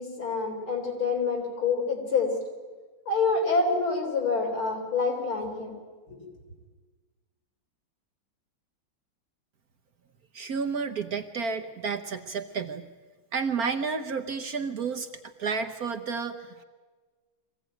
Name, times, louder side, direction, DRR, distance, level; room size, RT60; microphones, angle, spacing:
voice 1, 0.0-2.3 3.1-5.8 6.1-6.2, left 4 dB, 85° left, 1 dB, 4.5 m, -27 dB
voice 2, 10.3-12.8 13.3-16.6, right 5 dB, 55° right, 7 dB, 1.2 m, -31 dB
23.5 x 16.0 x 9.2 m, 1.4 s
omnidirectional pair, 2.2 m